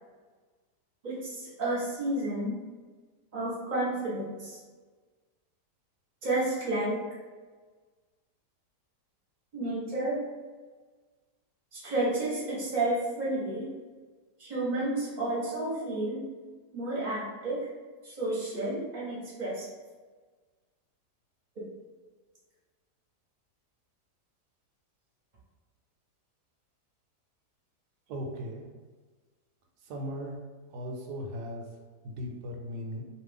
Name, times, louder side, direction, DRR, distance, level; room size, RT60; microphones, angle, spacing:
voice 1, 1.0-2.6 3.3-4.6 6.2-7.0 9.5-10.2 11.7-13.7 14.4-16.2 16.7-17.7 18.0-19.7, right 2 dB, 35° right, -6 dB, 0.9 m, -31 dB
voice 2, 28.1-28.6 29.9-30.4 30.7-31.6 32.0-33.0, equal, 85° right, 0 dB, 1.2 m, -37 dB
2.7 x 2.5 x 3.4 m, 1.4 s
omnidirectional pair, 1.7 m